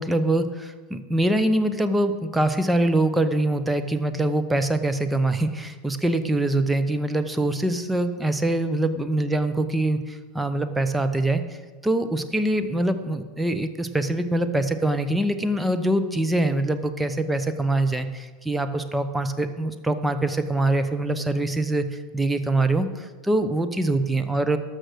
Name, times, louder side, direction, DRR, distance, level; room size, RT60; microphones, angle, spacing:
voice 1, 0.0-11.4 11.8-24.6, right 1 dB, 10° right, 9 dB, 0.8 m, -24 dB
12.5 x 6.4 x 6.3 m, 1.4 s
figure-of-eight pair, 85°, 0 cm